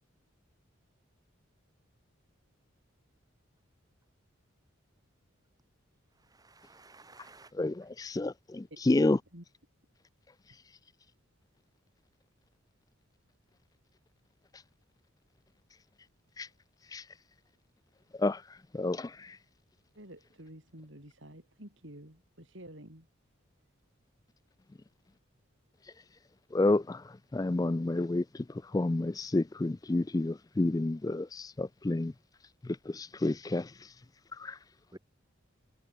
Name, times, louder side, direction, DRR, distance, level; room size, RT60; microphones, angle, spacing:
voice 1, 6.2-7.5 34.9-35.0, right 2 dB, 20° right, 2.5 m, -54 dB
voice 2, 7.5-9.2 16.4-16.5 16.9-17.0 18.1-18.4 18.7-19.4 26.5-32.1 32.6-33.7 34.4-34.6, left 2 dB, 15° left, 0.3 m, -30 dB
voice 3, 9.1-9.4 19.9-23.1, right 1 dB, 65° right, 6.2 m, -50 dB
head